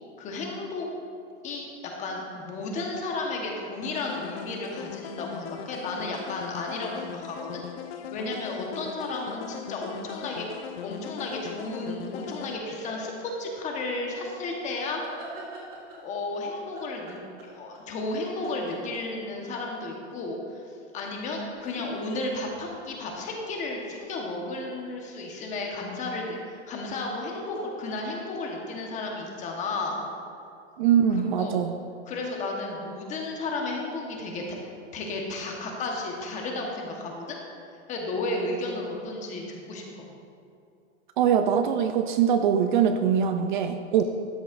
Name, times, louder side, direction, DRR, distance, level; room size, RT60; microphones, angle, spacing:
voice 1, 0.2-0.9 1.4-1.6 2.0-7.6 7.9-10.5 10.8-15.0 16.0-17.2 17.4-20.7 20.9-26.4 26.7-30.0 31.1-31.6 32.0-34.6 34.9-37.4 37.9-40.1, left 2 dB, 20° left, 0 dB, 1.2 m, -33 dB
sound 1, 3.8-12.5, left 9 dB, 60° left, 0.5 m, -39 dB
sound 2, 9.9-11.1 12.5-13.4 14.7-16.1 16.7-18.1 18.4-19.4 21.1-23.8 26.2-26.6 26.9-28.0, right 2 dB, 25° right, 2.4 m, -45 dB
voice 2, 30.8-31.7 41.2-44.0, right 8 dB, 45° right, 7 dB, 0.4 m, -22 dB
13.0 x 9.1 x 2.5 m, 2.5 s
supercardioid pair, 155°, 35 cm